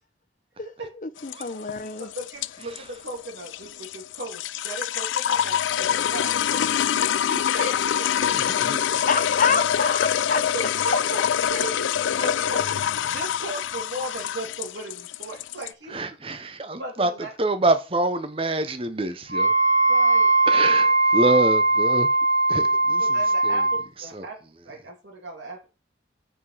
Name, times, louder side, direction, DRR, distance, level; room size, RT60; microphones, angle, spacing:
voice 1, 0.9-2.1 8.6-8.7 9.1-10.4 10.9-11.0, left 5 dB, 45° left, 0.8 m, -27 dB
sound 1, 1.2-15.7, left 9 dB, 90° left, 0.4 m, -25 dB
voice 2, 2.0-8.3 10.5-11.2 11.5-12.7 13.1-16.2 16.8-17.3 19.9-20.7 23.0-24.4 24.6-25.7, right 2 dB, 80° right, 2.6 m, -37 dB
voice 3, 8.5-8.8 15.9-17.1 17.4-19.5 20.5-22.1 22.5-23.0 23.4-23.5 24.1-24.2, right 2 dB, 30° right, 0.8 m, -26 dB
Wind instrument woodwind instrument, 19.3-23.8, right 2 dB, 45° right, 2.9 m, -20 dB
8.2 x 4.9 x 5.6 m
head